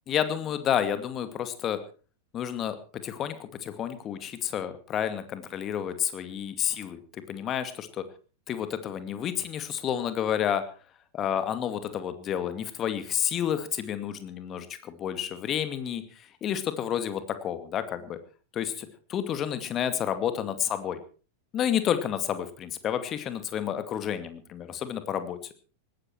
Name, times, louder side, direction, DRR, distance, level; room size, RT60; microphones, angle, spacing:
voice 1, 0.1-1.8 2.3-2.8 3.0-8.1 8.5-10.6 11.1-18.2 18.5-21.0 21.5-25.4, left 9 dB, 30° left, 11 dB, 2.3 m, -30 dB
19.5 x 15.0 x 4.6 m, 0.38 s
figure-of-eight pair, 90°, 0 cm